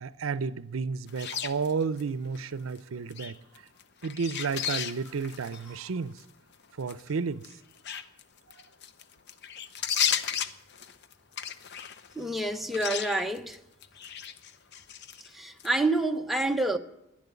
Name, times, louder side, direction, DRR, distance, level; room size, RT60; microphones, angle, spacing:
voice 1, 0.0-3.7 4.0-6.2 6.8-7.5 8.6-8.7, right 5 dB, 85° right, 0.5 m, -32 dB
sound 1, 1.1-2.0 2.3-2.8 3.1-5.8 6.2-6.3 6.9-7.1 7.4-12.4 12.7-13.6 13.8-15.3 15.6-15.7, left 8 dB, 55° left, 0.8 m, -34 dB
voice 2, 12.1-13.6 15.3-16.8, right 2 dB, ahead, 0.8 m, -28 dB
11.0 x 10.5 x 8.3 m
head